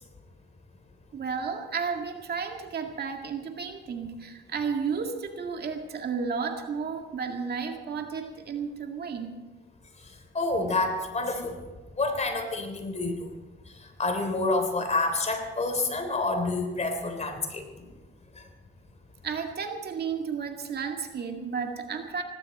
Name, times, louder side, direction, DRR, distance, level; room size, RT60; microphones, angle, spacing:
voice 1, 1.1-9.4 19.2-22.2, right 5 dB, 55° right, 4 dB, 2.1 m, -32 dB
voice 2, 10.3-11.6 12.0-13.3 13.8-17.8 18.4-18.5, left 2 dB, 35° left, 6 dB, 3.3 m, -28 dB
18.5 x 16.5 x 4.3 m, 1.2 s
cardioid pair, 90°, 20 cm